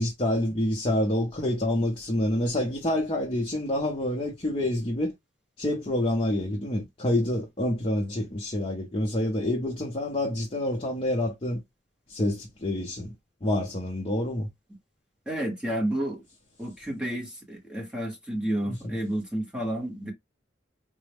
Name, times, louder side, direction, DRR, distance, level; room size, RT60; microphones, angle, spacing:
voice 1, 0.0-5.1 5.6-11.6 12.1-13.1 13.4-14.5 18.7-19.0, left 1 dB, 25° left, 0.5 m, -27 dB
voice 2, 15.3-16.2 16.6-20.1, right 1 dB, 5° right, 0.9 m, -30 dB
3.9 x 2.0 x 3.3 m
head